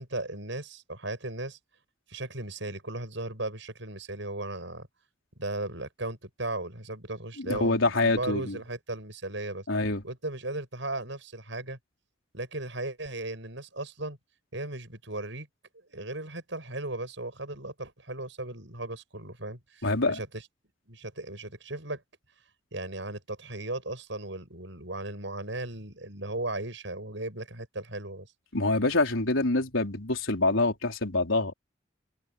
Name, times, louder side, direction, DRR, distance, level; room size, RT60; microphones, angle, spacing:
voice 1, 0.0-1.6 2.1-4.9 5.4-9.7 10.0-11.8 12.3-14.2 14.5-15.5 15.9-20.4 20.9-22.0 22.7-28.3, right 2 dB, 70° right, 6.9 m, -36 dB
voice 2, 7.4-8.6 9.7-10.0 19.8-20.2 28.5-31.5, left 2 dB, 85° left, 4.2 m, -26 dB
head